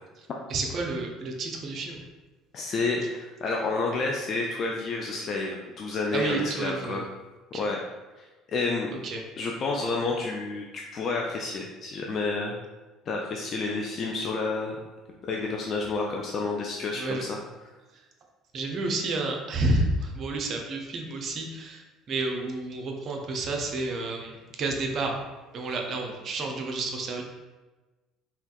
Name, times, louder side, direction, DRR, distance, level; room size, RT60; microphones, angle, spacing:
voice 1, 0.5-2.0 6.1-7.1 7.5-7.6 8.9-9.2 17.0-17.3 17.9-18.0 18.5-25.2 25.5-27.2, right 2 dB, 40° right, 2 dB, 0.4 m, -30 dB
voice 2, 2.5-7.0 7.5-7.8 8.2-8.9 9.4-12.5 13.1-14.8 15.3-17.4, left 3 dB, 40° left, -1 dB, 0.3 m, -30 dB
3.3 x 2.8 x 2.3 m, 1.2 s
figure-of-eight pair, 55°, 0 cm